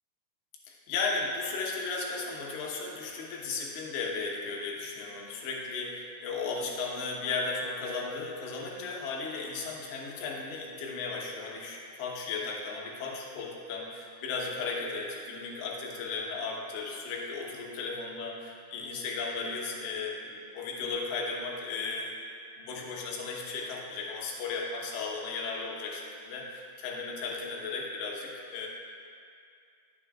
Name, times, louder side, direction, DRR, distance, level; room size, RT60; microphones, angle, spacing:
voice 1, 0.7-22.1 22.6-28.7, left 4 dB, 75° left, -2 dB, 3.3 m, -35 dB
20.5 x 6.9 x 2.4 m, 2.4 s
omnidirectional pair, 5.2 m